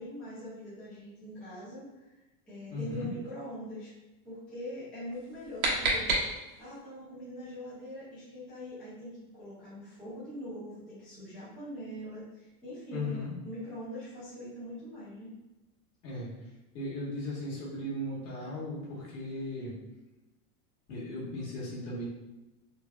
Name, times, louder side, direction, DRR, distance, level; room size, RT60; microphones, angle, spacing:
voice 1, 0.0-2.1 2.5-3.9 4.2-13.1 13.4-15.3, equal, 5° left, -12 dB, 0.3 m, -42 dB
voice 2, 2.7-3.1 12.9-13.3 16.0-16.3 16.7-19.7 20.9-22.0, left 1 dB, 85° left, -5 dB, 1.4 m, -37 dB
sound 1, 5.1-6.8, right 2 dB, 65° right, 1.0 m, -31 dB
3.3 x 2.2 x 2.3 m, 1.0 s
supercardioid pair, 160°, 45 cm